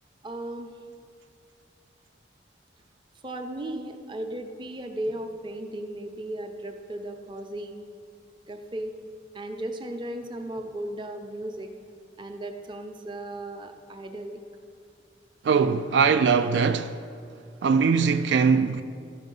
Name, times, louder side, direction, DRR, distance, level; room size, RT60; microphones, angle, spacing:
voice 1, 0.2-0.7 3.2-7.8 8.5-8.9 9.3-11.7 12.2-14.4, right 1 dB, 25° right, 0.6 m, -36 dB
voice 2, 15.4-17.0 17.6-18.8, right 5 dB, 75° right, 0.3 m, -21 dB
12.0 x 5.6 x 5.3 m
head